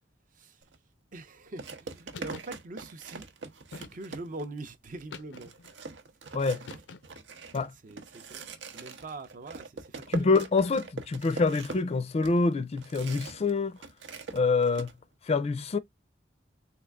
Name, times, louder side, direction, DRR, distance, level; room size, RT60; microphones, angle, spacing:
sound 1, 0.6-0.8 1.6-4.6 5.0-5.1 5.4-13.5 13.8-14.9, right 4 dB, 85° right, 0.7 m, -42 dB
voice 1, 1.1-3.2 3.7-5.5 7.8-10.3, right 2 dB, 45° right, 0.5 m, -43 dB
sound 2, 2.1-2.6 3.7-4.3 5.1-5.7 6.7-7.3, left 4 dB, 90° left, 0.5 m, -46 dB
voice 2, 10.1-13.7 14.3-14.9 15.3-15.8, left 4 dB, 35° left, 0.4 m, -26 dB
3.7 x 2.4 x 3.4 m
head